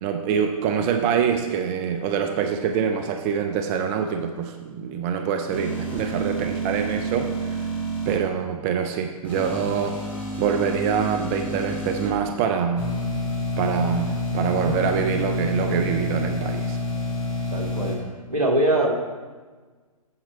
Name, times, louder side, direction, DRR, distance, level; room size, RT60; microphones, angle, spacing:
voice 1, 0.0-7.7 8.1-10.0 10.4-12.9 13.6-16.8, right 7 dB, 20° right, 6 dB, 0.4 m, -25 dB
sound 1, 5.5-8.2 9.2-12.1, right 2 dB, 10° left, 2.7 m, -30 dB
sound 2, 12.8-17.9, left 2 dB, 25° left, 2.5 m, -27 dB
voice 2, 17.5-18.0 18.3-18.9, right 1 dB, 75° right, 0 dB, 1.8 m, -22 dB
8.4 x 5.8 x 5.7 m, 1.4 s
figure-of-eight pair, 125°, 19 cm